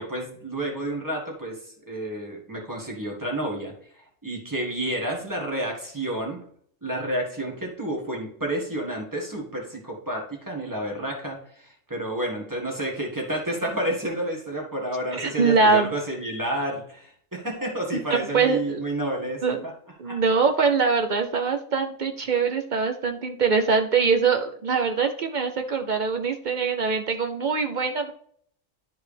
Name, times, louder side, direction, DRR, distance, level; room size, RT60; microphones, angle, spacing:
voice 1, 0.0-6.4 6.8-19.7 20.0-20.2, right 1 dB, 15° right, -1 dB, 1.7 m, -30 dB
voice 2, 15.1-15.9 18.1-18.8 19.4-19.6 20.0-28.1, right 5 dB, 55° right, 6 dB, 0.5 m, -23 dB
11.0 x 4.6 x 3.4 m, 0.62 s
omnidirectional pair, 1.4 m